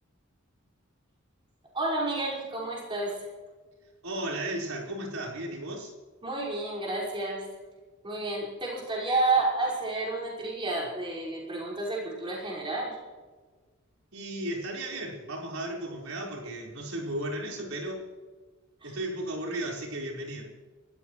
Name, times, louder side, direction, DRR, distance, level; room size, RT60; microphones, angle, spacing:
voice 1, 1.7-3.2 6.2-7.5 8.0-13.0 18.8-19.0, right 2 dB, 25° right, -4 dB, 5.3 m, -30 dB
voice 2, 4.0-5.9 14.1-18.1 18.8-20.4, right 1 dB, 85° right, -1 dB, 4.7 m, -35 dB
27.5 x 13.5 x 3.2 m, 1.4 s
head